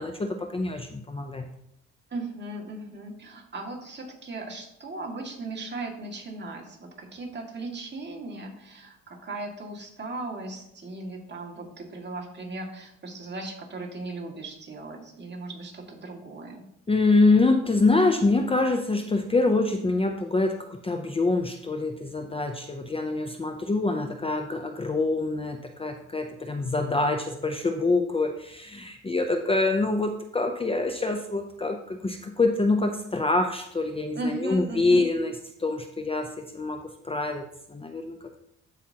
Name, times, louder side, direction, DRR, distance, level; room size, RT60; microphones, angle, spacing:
voice 1, 0.0-1.5 16.9-35.3 35.6-37.4 37.7-38.2, left 3 dB, 20° left, 5 dB, 0.6 m, -25 dB
voice 2, 2.1-16.7 34.1-35.1, right 2 dB, 35° right, -1 dB, 2.1 m, -37 dB
14.0 x 4.9 x 2.9 m, 0.76 s
cardioid pair, 90°, 30 cm